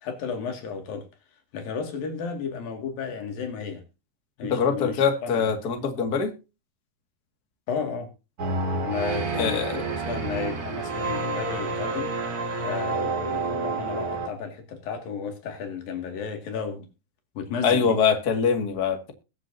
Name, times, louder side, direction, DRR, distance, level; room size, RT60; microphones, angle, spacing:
voice 1, 0.0-1.0 1.5-3.8 4.4-5.4 7.7-8.1 8.8-12.4 12.6-16.9 17.4-18.0, left 6 dB, 85° left, 4.0 m, -33 dB
voice 2, 4.5-6.3 9.4-9.8 17.6-19.1, left 6 dB, 30° left, 2.2 m, -23 dB
sound 1, 8.4-14.3, right 3 dB, 35° right, 1.5 m, -29 dB
22.0 x 7.5 x 2.7 m
omnidirectional pair, 4.0 m